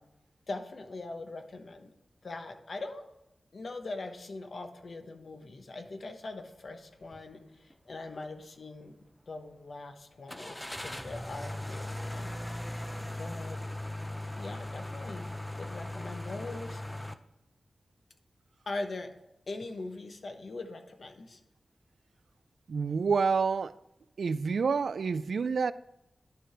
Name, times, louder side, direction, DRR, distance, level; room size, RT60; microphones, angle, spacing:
voice 1, 0.5-1.9 2.2-3.0 3.5-8.9 9.3-12.3 13.2-13.6 14.4-15.3 15.6-17.1 18.7-19.1 19.5-21.4, left 2 dB, 65° left, 1.1 m, -41 dB
sound 1, 7.0-7.3 7.7-7.8 10.3-17.1, left 1 dB, 10° left, 0.6 m, -38 dB
voice 2, 22.7-23.7 24.2-25.7, right 5 dB, 80° right, 0.3 m, -28 dB
11.0 x 5.0 x 4.5 m
wide cardioid pair, 70°, 0 cm